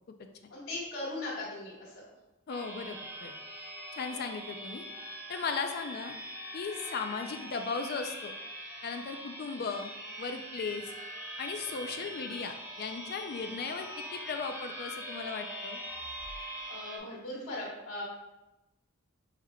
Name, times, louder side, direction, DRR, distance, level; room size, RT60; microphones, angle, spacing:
voice 1, 0.5-2.0 16.7-18.0, left 2 dB, 75° left, -7 dB, 1.5 m, -38 dB
voice 2, 2.5-3.4 4.0-4.8 5.3-6.1 6.5-8.3 8.8-9.9 10.2-10.9 11.4-15.8, left 5 dB, 50° left, 6 dB, 0.4 m, -37 dB
sound 1, 2.5-17.0, equal, 10° right, 0.6 m, -42 dB
5.9 x 3.5 x 2.2 m, 0.96 s
head